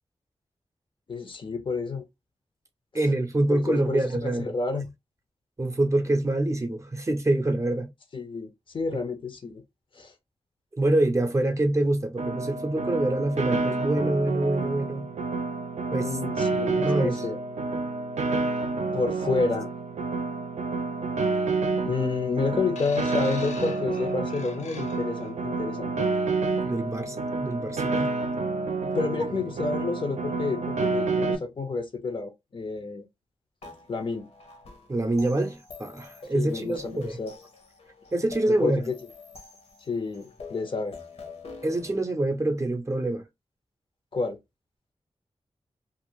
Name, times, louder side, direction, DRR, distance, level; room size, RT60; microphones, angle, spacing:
voice 1, 1.1-2.0 3.5-4.9 8.1-9.6 9.9-10.1 16.0-17.4 18.9-19.7 21.8-26.1 28.9-33.1 33.9-34.3 36.3-37.3 38.5-39.0 39.8-41.0 44.1-44.4, left 4 dB, 50° left, 0.6 m, -30 dB
voice 2, 2.9-4.6 5.6-7.9 10.8-15.1 15.9-16.1 16.8-17.2 26.6-28.1 34.9-37.1 38.1-38.8 41.6-43.3, right 1 dB, 25° right, 0.5 m, -26 dB
Piano, 12.2-31.3, right 3 dB, 85° right, 0.5 m, -29 dB
sound 1, 22.8-25.3 26.2-26.4, left 5 dB, 90° left, 0.5 m, -44 dB
sound 2, 33.6-42.0, left 4 dB, 70° left, 0.9 m, -46 dB
2.5 x 2.4 x 2.9 m
wide cardioid pair, 95°, 11 cm